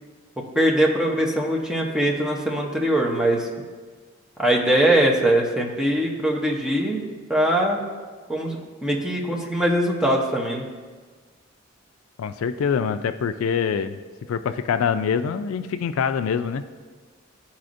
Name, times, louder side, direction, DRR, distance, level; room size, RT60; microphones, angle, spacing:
voice 1, 0.5-3.5 4.4-7.0 7.3-7.8 8.3-10.7, right 1 dB, 5° right, -2 dB, 0.8 m, -21 dB
voice 2, 12.2-14.0 14.3-16.6, left 6 dB, 80° left, 11 dB, 0.3 m, -24 dB
12.0 x 4.2 x 2.6 m, 1.5 s
head